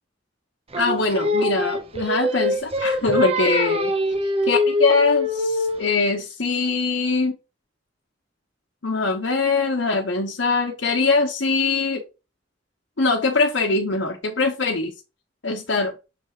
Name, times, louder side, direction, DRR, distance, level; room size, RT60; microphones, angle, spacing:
Singing, 0.7-5.9, left 1 dB, 30° right, 0.9 m, -23 dB
voice 1, 0.8-3.9 4.5-7.4 8.8-12.0 13.0-14.9 15.4-15.9, left 3 dB, 80° left, 1.1 m, -22 dB
6.8 x 3.4 x 4.8 m
head